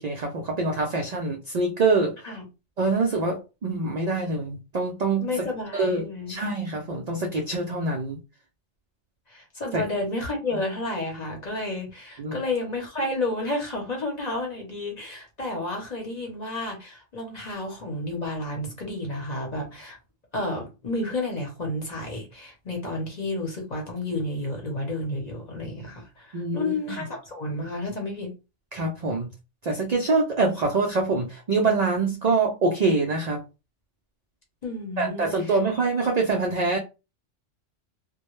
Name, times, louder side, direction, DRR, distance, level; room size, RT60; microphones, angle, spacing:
voice 1, 0.0-2.1 2.8-5.5 5.7-8.2 9.7-9.8 12.2-12.4 26.3-27.0 28.7-29.3 29.6-33.4 35.0-36.8, right 3 dB, 75° right, 0.3 m, -25 dB
voice 2, 5.2-6.4 9.3-20.0 20.3-28.3 34.6-35.6, left 2 dB, 40° left, 0.7 m, -31 dB
2.1 x 2.1 x 2.9 m
omnidirectional pair, 1.3 m